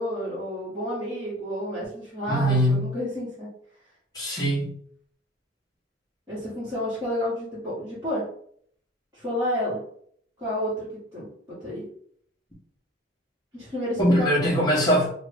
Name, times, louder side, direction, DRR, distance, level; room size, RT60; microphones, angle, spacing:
voice 1, 0.0-3.5 6.3-8.2 9.1-9.8 10.4-11.9 13.5-14.3, left 1 dB, 15° right, -13 dB, 1.4 m, -30 dB
voice 2, 2.3-2.9 4.1-4.7 14.0-15.1, equal, 20° left, -6 dB, 1.1 m, -21 dB
2.8 x 2.6 x 3.4 m, 0.62 s
head